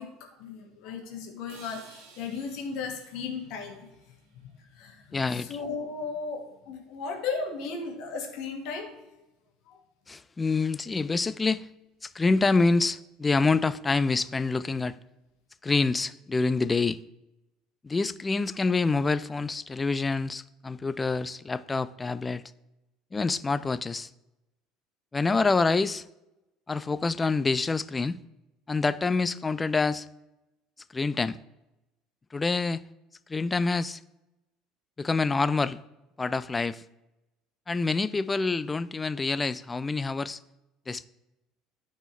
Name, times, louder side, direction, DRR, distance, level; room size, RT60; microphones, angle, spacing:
voice 1, 0.0-3.9 4.4-8.9 9.7-9.8, left 5 dB, 60° left, 1.7 m, -36 dB
sound 1, 1.5-5.5, right 4 dB, 65° right, 1.5 m, -56 dB
voice 2, 5.1-5.6 10.1-11.7 12.0-15.0 15.6-17.0 17.8-22.4 23.1-24.1 25.1-26.0 26.7-28.2 28.7-30.1 30.9-31.4 32.3-32.8 33.3-34.0 35.0-35.8 36.2-36.8 37.7-40.4 40.9-41.1, left 3 dB, 20° left, 0.4 m, -26 dB
13.0 x 4.3 x 3.2 m
figure-of-eight pair, 65°, 0 cm